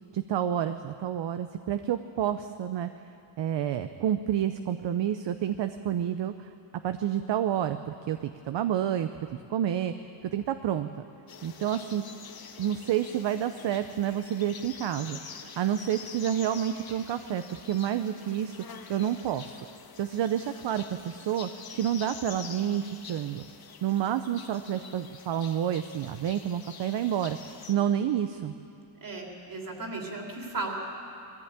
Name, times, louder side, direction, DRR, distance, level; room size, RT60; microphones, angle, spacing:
voice 1, 0.1-2.9 3.4-6.5 6.8-9.1 9.5-9.9 10.3-10.9 11.4-12.0 12.6-18.6 18.9-19.6 20.0-23.4 23.8-28.5, right 10 dB, 60° right, 9 dB, 0.7 m, -29 dB
sound 1, 11.3-27.7, left 6 dB, 45° left, 1.3 m, -46 dB
voice 2, 29.0-30.7, right 3 dB, 40° right, 0 dB, 3.2 m, -35 dB
20.5 x 14.5 x 8.8 m, 2.6 s
wide cardioid pair, 155°, 50 cm